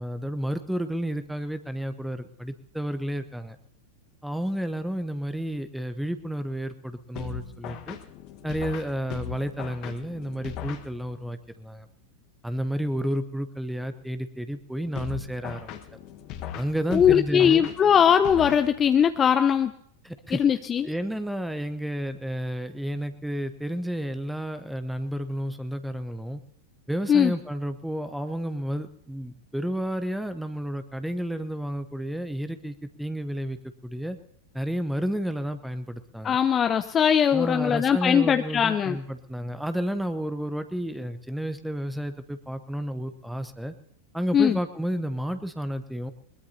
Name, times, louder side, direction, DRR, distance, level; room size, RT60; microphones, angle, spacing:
voice 1, 0.0-3.6 4.2-8.0 8.4-11.9 12.4-15.8 16.5-17.7 20.0-20.4 20.8-26.4 26.9-34.2 34.5-36.4 37.3-43.7 44.1-46.1, equal, ahead, 10 dB, 0.9 m, -31 dB
sound 1, 7.2-11.4 15.0-19.2, left 9 dB, 40° left, 1.4 m, -39 dB
voice 2, 16.9-19.7 20.3-20.9 27.1-27.3 36.2-39.0 44.3-44.6, left 8 dB, 25° left, 10 dB, 0.6 m, -20 dB
21.5 x 21.0 x 2.8 m, 0.69 s
figure-of-eight pair, 90°, 0 cm